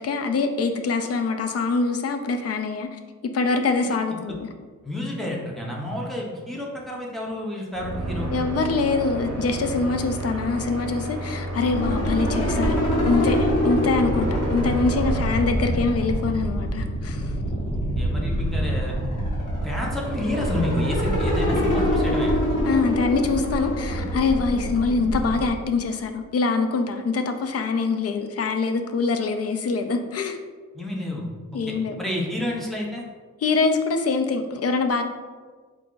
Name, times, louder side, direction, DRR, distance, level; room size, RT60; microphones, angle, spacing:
voice 1, 0.0-2.9 3.2-4.5 8.3-17.3 22.7-30.4 31.5-32.0 33.4-35.0, left 4 dB, 50° left, 7 dB, 0.4 m, -24 dB
voice 2, 4.8-8.3 17.7-19.0 19.6-22.3 30.7-31.3 32.0-33.0, left 1 dB, ahead, -3 dB, 0.7 m, -30 dB
sound 1, 7.7-15.3, right 1 dB, 55° right, 0.7 m, -31 dB
sound 2, 11.7-25.5, equal, 75° left, 1.1 m, -25 dB
4.2 x 2.5 x 3.7 m, 1.5 s
wide cardioid pair, 140°, 31 cm